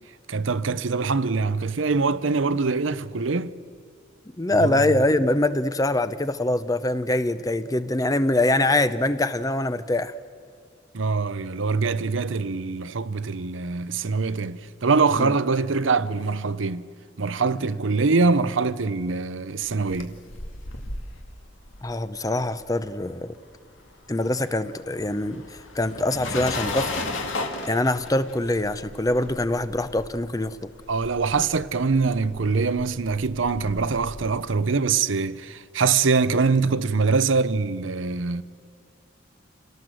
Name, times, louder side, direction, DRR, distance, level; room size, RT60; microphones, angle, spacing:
voice 1, 0.3-3.5 4.6-4.9 10.9-16.9 17.2-20.2 30.9-38.4, right 4 dB, 80° right, 0.7 m, -23 dB
voice 2, 4.4-10.1 15.2-15.3 21.8-23.3 24.1-25.4 25.7-26.9 27.7-30.7, left 1 dB, 20° left, 0.6 m, -24 dB
sound 1, 19.6-23.3 23.5-34.3, left 2 dB, 85° left, 2.3 m, -36 dB
27.5 x 18.0 x 7.8 m
head